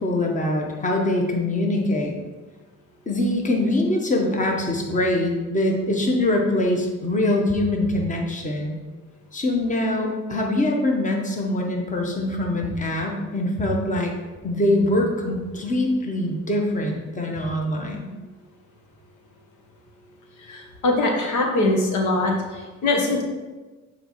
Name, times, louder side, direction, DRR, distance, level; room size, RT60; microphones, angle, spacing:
voice 1, 0.0-2.2 3.1-8.8 9.3-14.1 14.4-18.1, left 1 dB, 25° left, 1 dB, 1.1 m, -23 dB
voice 2, 20.5-23.2, left 2 dB, 75° left, 1 dB, 1.1 m, -22 dB
8.0 x 4.2 x 3.1 m, 1.3 s
cardioid pair, 90°, 30 cm